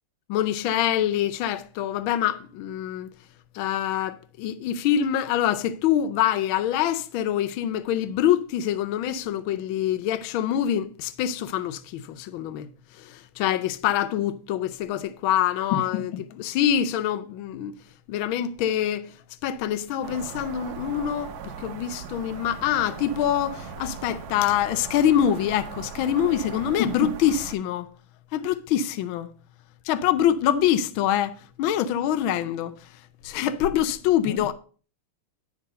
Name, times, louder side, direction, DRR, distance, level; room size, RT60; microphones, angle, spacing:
voice 1, 0.3-3.1 3.5-12.7 13.0-17.7 18.1-19.1 19.4-27.9 28.3-29.3 29.8-32.7 33.2-34.5, left 10 dB, 75° left, 1.4 m, -25 dB
sound 1, 20.0-27.6, right 6 dB, 70° right, 0.9 m, -39 dB
11.0 x 3.7 x 6.6 m
omnidirectional pair, 2.4 m